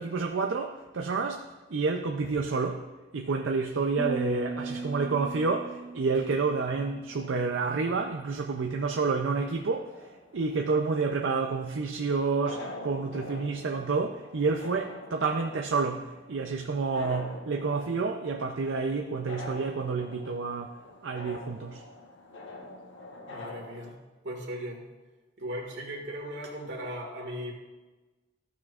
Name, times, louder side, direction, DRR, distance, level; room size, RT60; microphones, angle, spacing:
voice 1, 0.0-2.9 3.1-21.8, right 4 dB, 90° right, 3 dB, 0.5 m, -29 dB
sound 1, 4.0-7.4, right 3 dB, 10° right, 1.2 m, -38 dB
sound 2, 4.5-23.9, left 2 dB, 80° left, 1.2 m, -47 dB
voice 2, 23.2-24.8 25.4-27.5, equal, 70° right, 0 dB, 1.8 m, -38 dB
14.0 x 6.0 x 2.4 m, 1.2 s
head